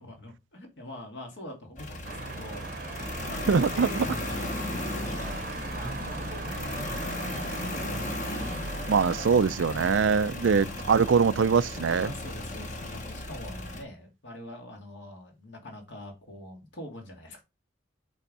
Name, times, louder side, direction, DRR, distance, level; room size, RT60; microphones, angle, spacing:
voice 1, 0.0-8.0 12.0-17.4, left 1 dB, 75° left, 2.5 m, -44 dB
sound 1, 1.8-13.8, left 1 dB, 40° left, 1.2 m, -36 dB
sound 2, 2.0-9.3, right 3 dB, 50° right, 0.8 m, -39 dB
voice 2, 3.5-4.0 8.9-12.1, right 5 dB, 85° right, 0.4 m, -23 dB
8.5 x 3.6 x 5.4 m
head